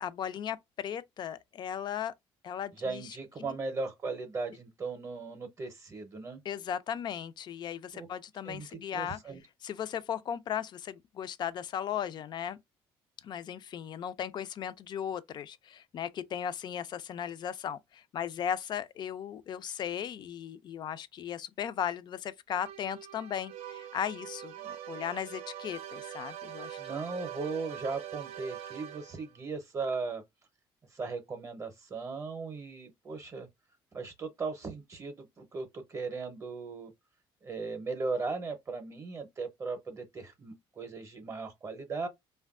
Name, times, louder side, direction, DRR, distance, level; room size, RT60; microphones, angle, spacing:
voice 1, 0.0-2.1 2.4-3.1 3.4-3.6 6.5-9.2 9.6-12.6 13.2-26.8, left 9 dB, 50° left, 0.3 m, -37 dB
voice 2, 2.7-6.4 7.9-8.1 8.4-9.4 26.8-30.2 30.9-33.5 33.9-36.9 37.4-42.1, right 4 dB, 30° right, 0.6 m, -37 dB
sound 1, 22.5-29.4, right 10 dB, 85° right, 0.5 m, -44 dB
3.3 x 2.2 x 2.4 m
cardioid pair, 110°, 10 cm